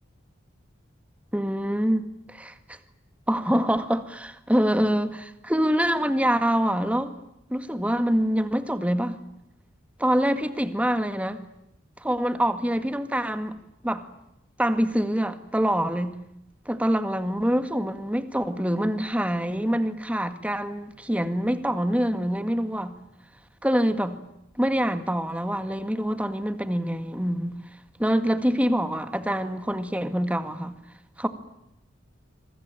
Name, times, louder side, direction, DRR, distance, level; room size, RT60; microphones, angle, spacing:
voice 1, 1.3-2.8 3.3-7.2 7.5-9.2 10.0-11.4 12.0-13.6 13.8-14.1 14.6-16.2 16.7-22.9 23.6-24.2 24.6-27.6 28.0-30.7 31.2-31.3, equal, 5° right, 2.0 m, -25 dB
26.5 x 23.5 x 9.1 m
head